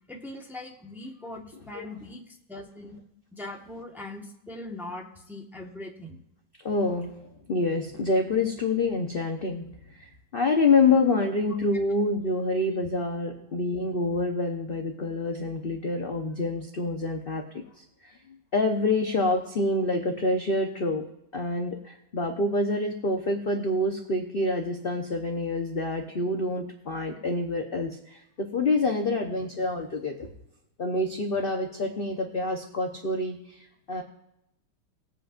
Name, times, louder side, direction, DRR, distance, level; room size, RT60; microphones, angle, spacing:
voice 1, 0.1-3.0 3.3-6.2, left 2 dB, ahead, 0 dB, 1.0 m, -41 dB
voice 2, 6.6-7.1 7.5-9.6 9.9-17.6 18.0-18.1 18.5-21.0 21.3-30.3 30.8-34.0, left 2 dB, 45° left, 3 dB, 0.7 m, -27 dB
20.0 x 8.2 x 2.5 m, 0.84 s
omnidirectional pair, 2.2 m